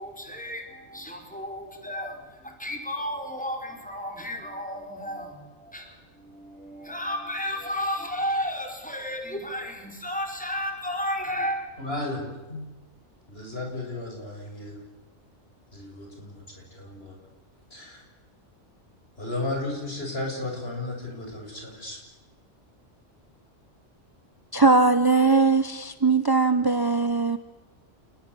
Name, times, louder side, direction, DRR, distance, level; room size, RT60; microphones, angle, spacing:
voice 1, 0.0-11.6, equal, 5° left, 3 dB, 4.9 m, -33 dB
voice 2, 11.8-12.7 13.3-14.8 15.7-17.2 17.7-18.0 19.2-22.0, left 2 dB, 55° left, 1 dB, 7.7 m, -34 dB
voice 3, 24.5-27.4, right 3 dB, 20° right, 11 dB, 0.9 m, -20 dB
29.0 x 21.0 x 8.6 m, 1.1 s
omnidirectional pair, 1.2 m